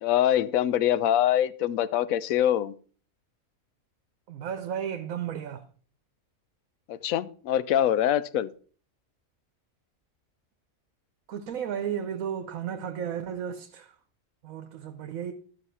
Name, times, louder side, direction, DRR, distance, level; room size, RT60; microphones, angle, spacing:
voice 1, 0.0-2.7 6.9-8.5, left 11 dB, 80° left, 1.0 m, -24 dB
voice 2, 4.3-5.6 11.3-13.9 14.4-15.3, right 8 dB, 80° right, 1.2 m, -33 dB
12.5 x 5.7 x 5.6 m
omnidirectional pair, 1.4 m